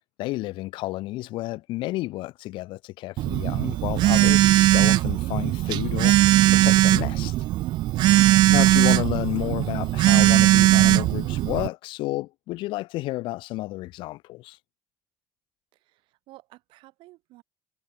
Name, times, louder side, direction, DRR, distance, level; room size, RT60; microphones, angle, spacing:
voice 1, 0.2-7.3 8.5-14.6, left 18 dB, 75° left, 1.0 m, -31 dB
Telephone, 3.2-11.7, right 16 dB, 60° right, 0.6 m, -19 dB
voice 2, 8.2-8.6 15.7-17.4, right 19 dB, 80° right, 6.3 m, -52 dB
cardioid pair, 175°, 8 cm